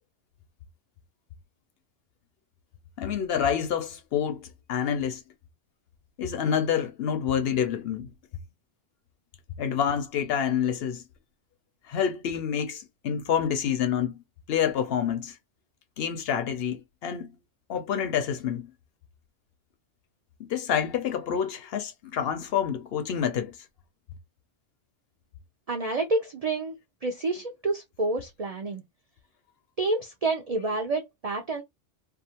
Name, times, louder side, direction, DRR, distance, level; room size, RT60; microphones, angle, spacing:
voice 1, 3.0-5.2 6.2-8.1 9.6-11.0 11.9-14.2 14.5-15.4 16.0-17.3 17.7-18.7 20.4-23.6, left 8 dB, 65° left, 0.7 m, -28 dB
voice 2, 25.7-26.7 27.0-28.8 29.8-31.6, right 2 dB, 70° right, 0.3 m, -28 dB
2.5 x 2.3 x 2.8 m
omnidirectional pair, 1.3 m